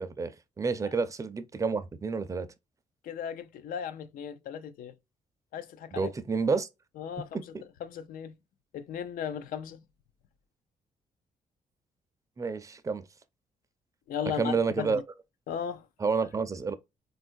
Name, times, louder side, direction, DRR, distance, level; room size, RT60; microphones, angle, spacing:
voice 1, 0.0-2.5 5.9-6.7 7.3-7.5 12.4-13.0 14.4-15.0 16.0-16.7, right 4 dB, 25° right, 0.4 m, -29 dB
voice 2, 3.0-4.9 5.5-6.1 7.0-7.4 7.8-8.3 8.7-9.8 14.1-15.0 15.5-15.9, left 8 dB, 80° left, 0.4 m, -36 dB
3.6 x 2.3 x 2.5 m
cardioid pair, 90°, 14 cm